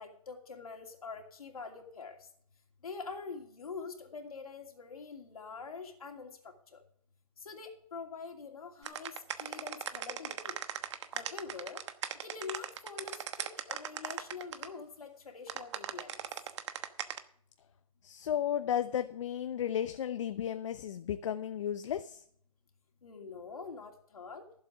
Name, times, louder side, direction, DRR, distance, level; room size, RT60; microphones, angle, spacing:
voice 1, 0.0-2.2 2.8-6.3 7.4-10.6 11.1-11.8 12.2-16.2 23.0-24.4, left 5 dB, 80° left, 2 dB, 2.7 m, -45 dB
sound 1, 8.8-14.7 15.5-17.2, right 9 dB, 55° right, 1.1 m, -38 dB
voice 2, 18.0-22.2, left 9 dB, 55° left, 10 dB, 0.7 m, -34 dB
15.5 x 7.6 x 5.0 m, 0.64 s
hypercardioid pair, 140°, 18 cm